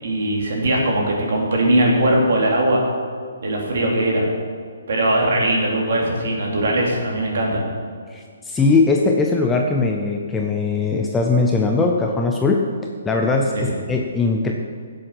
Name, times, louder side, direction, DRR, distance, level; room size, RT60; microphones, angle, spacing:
voice 1, 0.0-2.8 3.4-4.2 4.9-7.6 13.5-13.6, right 1 dB, 50° right, -1 dB, 3.2 m, -20 dB
voice 2, 8.1-12.7 13.0-14.5, left 3 dB, 5° left, 1 dB, 0.5 m, -20 dB
16.0 x 7.8 x 5.9 m, 2.1 s
hypercardioid pair, 180°, 0 cm